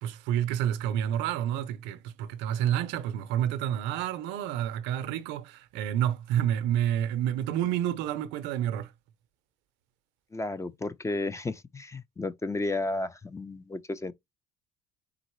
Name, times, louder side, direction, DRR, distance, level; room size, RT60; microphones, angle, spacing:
voice 1, 0.0-8.9, right 11 dB, 75° right, 0.7 m, -29 dB
voice 2, 10.3-14.1, left 2 dB, 15° left, 0.6 m, -33 dB
3.9 x 3.8 x 3.1 m
supercardioid pair, 85°, 19 cm